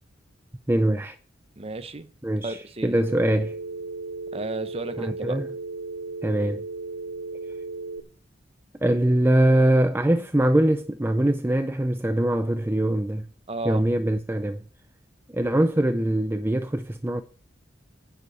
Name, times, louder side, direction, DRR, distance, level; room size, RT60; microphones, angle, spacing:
voice 1, 0.7-1.2 2.2-3.6 5.0-5.5 6.2-6.6 8.8-13.3 13.6-14.6 15.3-17.2, right 1 dB, 10° right, 0.5 m, -23 dB
voice 2, 1.6-2.1 2.4-3.0 4.3-5.4 13.5-13.8, right 2 dB, 30° right, 0.9 m, -33 dB
Telephone, 3.0-8.0, right 3 dB, 70° right, 1.2 m, -35 dB
10.0 x 6.8 x 7.7 m
head